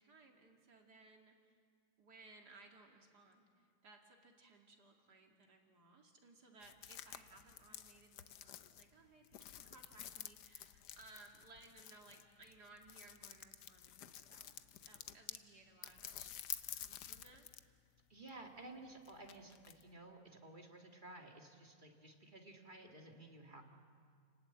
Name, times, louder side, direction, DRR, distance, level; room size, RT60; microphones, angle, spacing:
voice 1, 0.0-1.4 2.0-14.6 14.9-17.5, right 3 dB, 60° right, 2 dB, 2.9 m, -62 dB
sound 1, 6.6-15.5 15.8-17.7 18.0-19.8, left 11 dB, 70° left, 1.3 m, -51 dB
voice 2, 18.1-23.6, right 2 dB, 25° right, 2 dB, 2.0 m, -54 dB
29.5 x 19.0 x 8.0 m, 2.2 s
omnidirectional pair, 2.0 m